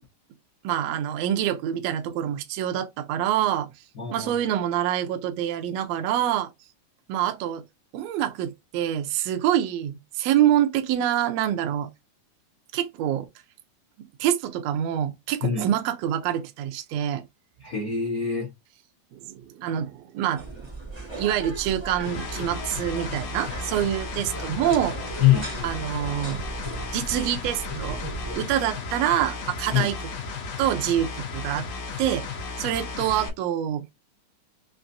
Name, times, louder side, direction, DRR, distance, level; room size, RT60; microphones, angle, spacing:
voice 1, 0.6-3.7 4.1-6.5 7.1-7.6 7.9-11.9 12.7-13.3 14.0-17.2 19.1-20.5 21.0-25.0 25.6-26.4 26.9-28.0 28.3-30.0 30.6-31.7 32.0-32.2 32.6-33.9, right 11 dB, 80° right, 1.5 m, -26 dB
voice 2, 3.9-4.3 15.4-15.7 17.6-18.5 25.2-25.5 29.7-29.9, left 9 dB, 70° left, 0.8 m, -23 dB
sound 1, 20.4-28.4, right 2 dB, 45° right, 0.3 m, -37 dB
sound 2, 22.0-33.3, left 4 dB, 85° left, 2.4 m, -34 dB
5.8 x 2.6 x 2.6 m
omnidirectional pair, 3.7 m